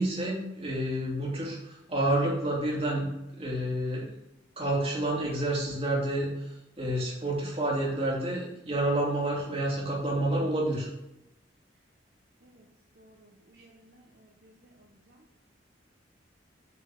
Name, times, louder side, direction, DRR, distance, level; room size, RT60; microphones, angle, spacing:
voice 1, 0.0-3.1 3.3-4.1 4.6-6.3 6.8-10.9, right 1 dB, 30° right, -4 dB, 2.9 m, -29 dB
voice 2, 13.0-15.2, right 1 dB, 55° right, -1 dB, 1.0 m, -59 dB
8.4 x 4.8 x 6.0 m, 0.89 s
head